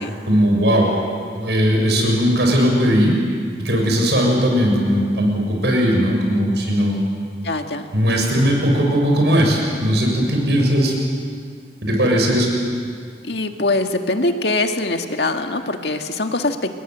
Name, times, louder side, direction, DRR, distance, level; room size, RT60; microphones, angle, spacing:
voice 1, 0.3-0.9 1.4-3.2 3.6-7.0 7.9-10.9 11.8-12.5, equal, 75° right, 0 dB, 6.8 m, -18 dB
voice 2, 7.4-7.9 13.2-16.7, left 2 dB, 70° left, 5 dB, 1.8 m, -22 dB
28.5 x 22.0 x 8.0 m, 2.1 s
head